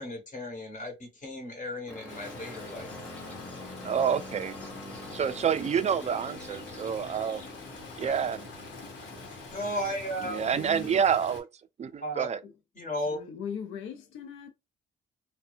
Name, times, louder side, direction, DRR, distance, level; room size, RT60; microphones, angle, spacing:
voice 1, 0.0-2.9 8.0-8.2 9.3-10.5 12.0-12.3 12.7-13.2, equal, 40° left, 1.5 m, -35 dB
sound 1, 1.9-10.5, left 1 dB, 5° left, 1.0 m, -45 dB
Stream, 2.1-11.4, left 3 dB, 70° left, 1.1 m, -45 dB
voice 2, 3.8-4.6 5.1-7.4 8.0-8.5 10.3-11.4 11.8-12.4, right 7 dB, 35° right, 0.4 m, -28 dB
voice 3, 10.5-11.0 12.4-12.5 13.0-14.5, left 7 dB, 85° left, 0.6 m, -40 dB
2.6 x 2.2 x 2.5 m
cardioid pair, 90°, 20 cm